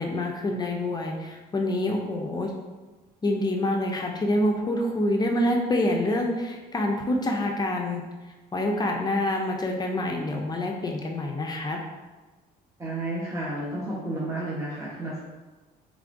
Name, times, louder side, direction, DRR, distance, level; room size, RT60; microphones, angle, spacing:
voice 1, 0.0-2.5 3.2-8.0 8.5-11.8, left 1 dB, 25° left, 1 dB, 0.5 m, -26 dB
voice 2, 12.8-15.2, right 1 dB, 20° right, -7 dB, 1.0 m, -31 dB
4.7 x 3.2 x 2.6 m, 1.2 s
cardioid pair, 110°, 17 cm